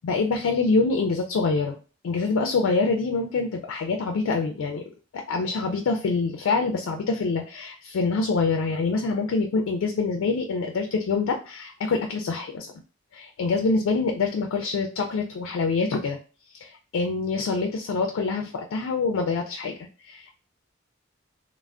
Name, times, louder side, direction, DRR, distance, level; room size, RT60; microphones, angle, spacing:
voice 1, 0.0-1.8 2.0-4.8 5.1-12.7 13.1-16.2 16.6-19.7 20.0-20.3, left 4 dB, 90° left, 4 dB, 0.3 m, -25 dB
3.3 x 2.0 x 2.4 m, 0.37 s
head